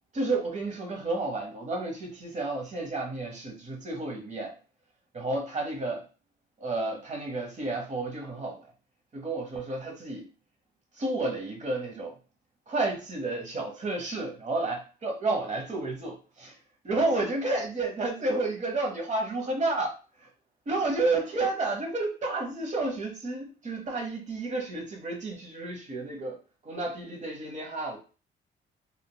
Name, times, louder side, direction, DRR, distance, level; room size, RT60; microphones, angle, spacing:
voice 1, 0.1-4.5 5.1-6.1 6.6-8.6 9.1-10.3 11.0-12.2 12.7-16.6 16.8-20.3 20.7-26.4 26.6-28.0, right 2 dB, 35° right, 1.0 m, -31 dB
3.7 x 2.3 x 2.2 m
cardioid pair, 90°, 20 cm